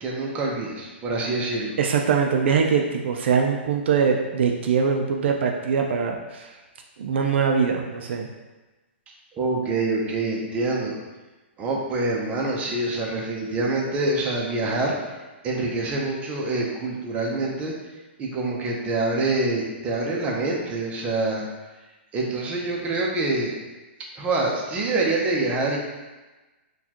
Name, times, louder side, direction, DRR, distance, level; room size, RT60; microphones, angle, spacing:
voice 1, 0.0-1.8 9.3-11.0 11.6-15.0 15.4-17.7 18.2-21.5 22.1-23.5 24.2-25.8, right 2 dB, 20° right, -2 dB, 0.6 m, -26 dB
voice 2, 1.8-6.5 7.0-8.3, right 6 dB, 70° right, 2 dB, 0.4 m, -22 dB
4.2 x 2.4 x 2.8 m, 1.2 s
hypercardioid pair, 145°, 6 cm